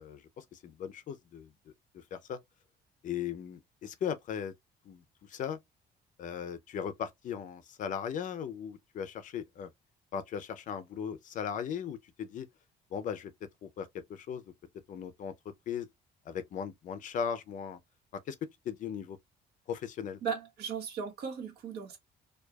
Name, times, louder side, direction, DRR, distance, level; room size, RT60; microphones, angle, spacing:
voice 1, 0.0-1.5 1.9-2.4 3.0-4.5 4.9-5.0 5.3-5.6 6.2-9.7 10.1-12.5 12.9-13.3 13.6-14.4 14.9-15.3 15.7-15.9 16.3-17.8 18.3-18.4 18.6-19.2 19.7-20.2, left 8 dB, 45° left, 0.5 m, -37 dB
voice 2, 20.2-22.0, right 6 dB, 70° right, 1.5 m, -37 dB
4.6 x 2.3 x 2.3 m
cardioid pair, 170°, 18 cm